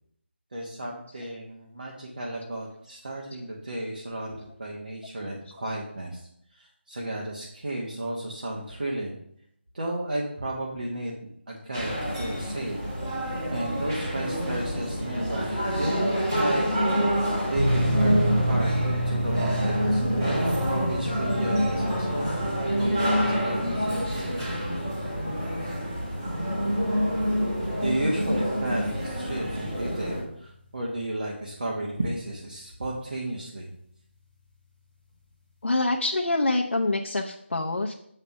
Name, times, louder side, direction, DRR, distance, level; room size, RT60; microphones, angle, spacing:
voice 1, 0.5-9.2 9.7-12.8 13.5-16.7 17.5-18.1 18.4-24.6 25.4-25.8 27.8-33.7, right 1 dB, 45° right, -3 dB, 1.1 m, -33 dB
sound 1, 11.7-30.2, equal, 15° right, 1.5 m, -27 dB
sound 2, 17.5-32.0, equal, 5° left, 1.1 m, -32 dB
voice 2, 35.6-37.9, left 2 dB, 90° left, 0 dB, 0.7 m, -25 dB
7.3 x 3.3 x 5.3 m, 0.70 s
figure-of-eight pair, 180°, 7 cm